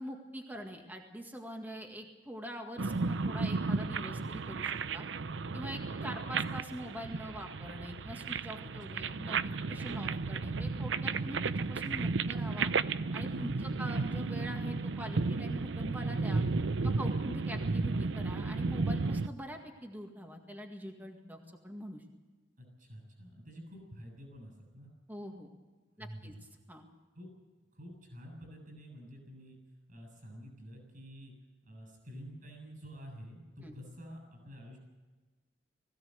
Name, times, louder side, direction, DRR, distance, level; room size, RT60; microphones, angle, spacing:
voice 1, 0.0-5.0 5.5-12.7 13.1-16.4 16.8-22.0 25.1-25.5 26.0-26.3 26.7-26.9 33.6-33.7, equal, 10° right, 3 dB, 1.9 m, -44 dB
sound 1, 2.8-19.3, right 4 dB, 85° right, 0.6 m, -33 dB
voice 2, 8.6-9.2 13.3-13.8 17.0-17.4 22.6-24.9 26.0-26.4 27.1-27.3 27.7-29.6 29.9-31.3 31.6-34.8, equal, 50° right, 3 dB, 7.5 m, -48 dB
21.0 x 16.5 x 7.9 m, 1.2 s
head